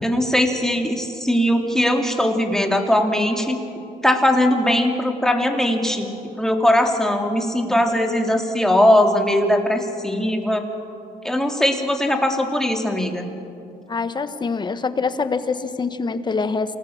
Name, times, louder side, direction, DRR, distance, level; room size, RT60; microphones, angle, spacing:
voice 1, 0.0-3.6 4.0-10.6 11.2-13.3, left 1 dB, 5° left, 2 dB, 2.8 m, -20 dB
voice 2, 13.9-16.8, left 4 dB, 25° left, 11 dB, 1.3 m, -25 dB
28.5 x 19.0 x 7.2 m, 2.6 s
cardioid pair, 110°, 17 cm